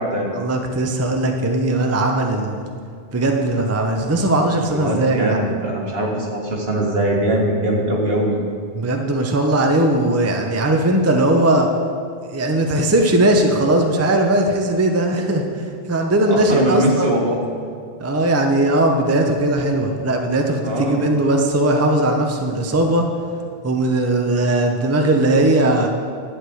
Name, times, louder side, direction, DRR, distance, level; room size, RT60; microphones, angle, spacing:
voice 1, 0.3-2.6 3.1-5.4 8.7-11.7 12.3-17.1 18.0-23.1 23.6-25.9, right 1 dB, 15° right, 3 dB, 0.7 m, -18 dB
voice 2, 4.7-8.4 16.3-17.4 20.6-21.0, right 1 dB, 65° right, -1 dB, 1.8 m, -21 dB
11.0 x 4.9 x 7.8 m, 2.3 s
omnidirectional pair, 1.1 m